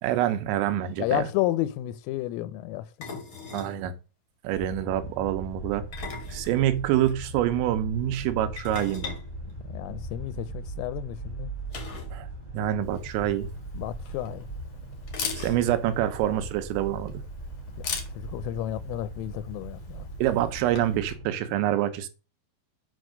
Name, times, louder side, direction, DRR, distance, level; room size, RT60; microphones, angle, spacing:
voice 1, 0.0-1.3 3.5-3.9 4.4-5.9 6.3-9.2 12.1-12.3 12.5-13.5 15.4-17.2 20.2-22.1, right 12 dB, 80° right, 3.5 m, -26 dB
sound 1, 0.7-0.8 1.0-1.2 3.0-3.8 5.7-7.1 8.6-10.2 11.7-12.2 12.5-12.6 12.9-13.0 14.0-14.1 15.1-15.9, left 4 dB, 55° left, 1.4 m, -40 dB
voice 2, 1.0-2.9 3.1-3.2 9.7-11.5 13.7-14.5 17.8-20.1, left 14 dB, 85° left, 3.3 m, -31 dB
sound 2, 4.5-21.3, right 2 dB, 10° right, 2.0 m, -39 dB
Camera, 12.8-21.1, left 6 dB, 70° left, 1.5 m, -41 dB
8.3 x 4.5 x 6.3 m
omnidirectional pair, 5.9 m